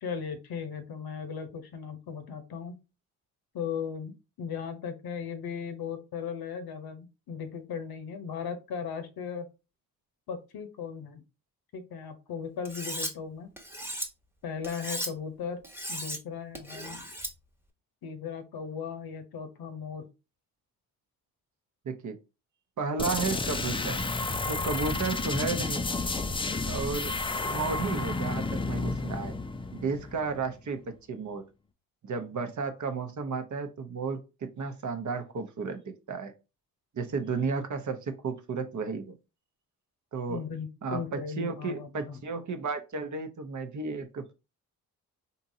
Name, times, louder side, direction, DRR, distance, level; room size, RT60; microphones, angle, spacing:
voice 1, 0.0-2.7 3.5-4.1 4.4-9.5 10.3-11.2 11.7-13.5 14.4-15.6 15.9-17.0 18.0-20.1 40.3-42.2, left 6 dB, 65° left, 9 dB, 0.8 m, -37 dB
Cutlery silverware, 12.7-13.1 13.6-14.1 14.6-15.1 15.6-16.2 16.6-17.3, equal, 5° right, 1.0 m, -36 dB
voice 2, 21.8-22.1 22.8-24.0 24.5-25.8 26.6-27.2 27.4-29.3 29.7-30.8 31.1-31.4 32.0-34.2 34.6-35.8 36.1-36.3 36.9-39.2 40.1-40.4 40.8-44.3, right 4 dB, 45° right, 7 dB, 0.7 m, -33 dB
sound 1, 23.0-30.6, left 3 dB, 15° left, 0.4 m, -31 dB
3.7 x 2.7 x 2.6 m, 0.28 s
supercardioid pair, 45°, 40 cm